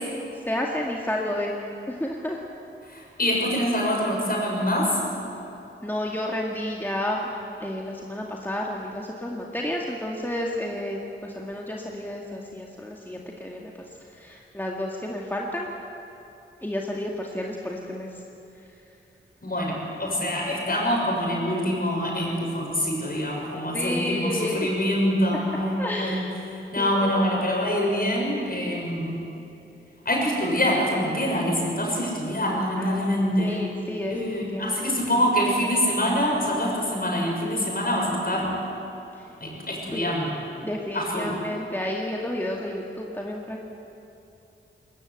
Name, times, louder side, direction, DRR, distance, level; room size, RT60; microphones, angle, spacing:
voice 1, 0.5-1.5 1.9-2.4 5.8-7.3 7.6-13.7 14.1-15.7 16.6-18.1 23.7-24.7 25.8-26.3 26.8-27.1 32.8-33.0 33.4-34.2 34.5-35.0 39.9-40.1 40.6-43.6, left 1 dB, 10° left, -2 dB, 2.0 m, -31 dB
voice 2, 2.9-5.0 19.4-26.2 26.7-29.2 30.0-33.6 34.1-38.5 39.4-40.4 40.9-41.4, equal, 45° left, -1 dB, 6.8 m, -25 dB
21.0 x 20.5 x 8.3 m, 2.9 s
wide cardioid pair, 70°, 21 cm